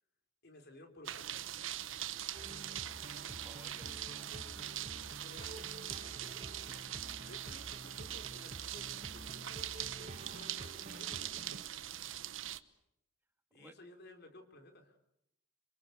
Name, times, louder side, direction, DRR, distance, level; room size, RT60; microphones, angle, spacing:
voice 1, 0.4-1.3 3.8-6.4 7.0-11.9 13.5-15.0, left 1 dB, 55° left, 5 dB, 4.0 m, -57 dB
sound 1, 1.0-12.6, right 12 dB, 70° right, 1.1 m, -42 dB
sound 2, 2.3-11.7, right 1 dB, 35° right, 1.2 m, -50 dB
voice 2, 3.3-4.5 13.5-13.7, right 1 dB, 10° right, 6 dB, 1.9 m, -58 dB
sound 3, 9.4-10.5, left 1 dB, 35° left, 4.4 m, -69 dB
27.5 x 25.0 x 8.1 m, 0.78 s
head